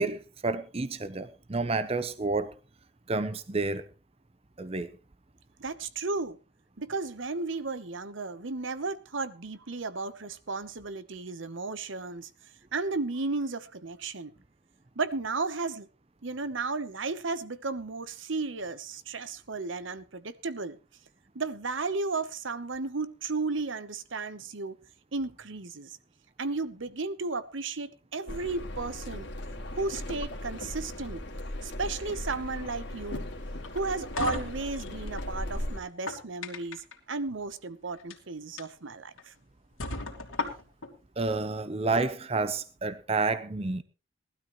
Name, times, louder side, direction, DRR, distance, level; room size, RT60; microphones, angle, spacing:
voice 1, 0.0-2.5 3.1-3.8 4.6-4.9 41.2-43.8, right 3 dB, 30° right, 0.7 m, -30 dB
voice 2, 5.6-6.4 6.8-12.3 12.7-14.3 15.0-15.9 16.2-20.8 21.3-24.7 25.1-26.0 26.4-29.3 29.7-31.2 31.6-33.2 33.7-39.3, right 3 dB, 70° right, 1.0 m, -34 dB
sound 1, 28.3-35.8, left 1 dB, 60° left, 2.1 m, -37 dB
sound 2, 33.6-35.3 35.9-36.9 37.9-38.2 38.6-38.7 39.2-39.3 39.8-40.9, left 2 dB, 90° left, 2.5 m, -35 dB
19.0 x 12.5 x 3.1 m
head